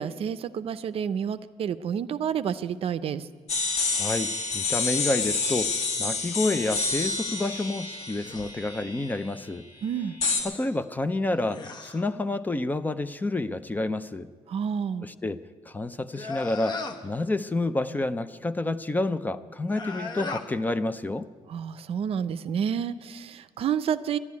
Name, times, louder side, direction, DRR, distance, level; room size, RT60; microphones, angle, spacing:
voice 1, 0.0-3.3 9.8-10.1 14.5-15.1 21.5-24.2, right 8 dB, 55° right, 13 dB, 0.5 m, -29 dB
sound 1, 3.5-9.2 10.2-10.4, left 4 dB, 65° left, 2.5 m, -28 dB
voice 2, 3.9-9.7 10.4-14.3 15.0-21.3, left 2 dB, 15° left, 12 dB, 0.4 m, -29 dB
sound 2, 8.0-8.6 11.1-12.1 16.1-17.1 19.6-20.5, left 3 dB, 35° left, 1.0 m, -37 dB
12.0 x 11.0 x 9.5 m, 1.5 s
cardioid pair, 135°, 12 cm